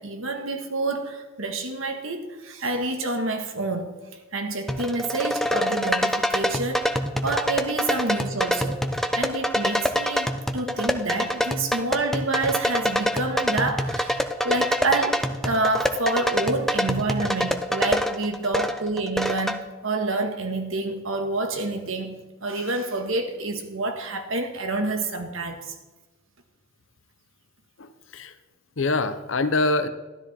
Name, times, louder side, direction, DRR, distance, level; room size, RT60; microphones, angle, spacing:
voice 1, 0.0-4.0 4.3-6.8 7.2-8.8 9.2-25.7, right 2 dB, 75° right, 5 dB, 1.6 m, -28 dB
sound 1, 4.7-19.6, equal, ahead, 0.6 m, -26 dB
voice 2, 27.8-28.3 28.8-29.9, left 2 dB, 65° left, 10 dB, 0.8 m, -24 dB
13.0 x 12.5 x 4.3 m, 1.2 s
head